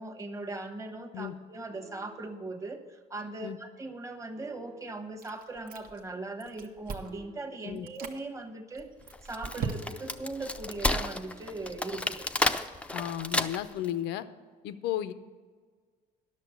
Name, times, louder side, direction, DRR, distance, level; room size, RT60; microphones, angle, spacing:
voice 1, 0.0-8.9 9.2-12.3, right 2 dB, 20° right, 4 dB, 1.1 m, -39 dB
sound 1, 1.7-2.5 4.4-5.2 7.0-7.9 9.7-12.4, equal, 85° right, 1.8 m, -55 dB
Chewing mastication, 5.2-6.1 6.4-7.2 7.8-8.2 8.7-10.2, right 6 dB, 60° right, 1.1 m, -39 dB
Wood, 9.1-13.9, left 2 dB, 5° left, 0.4 m, -31 dB
voice 2, 12.9-14.2 14.6-15.1, left 11 dB, 85° left, 13 dB, 0.6 m, -34 dB
10.5 x 6.6 x 6.9 m, 1.5 s
cardioid pair, 110°, 17 cm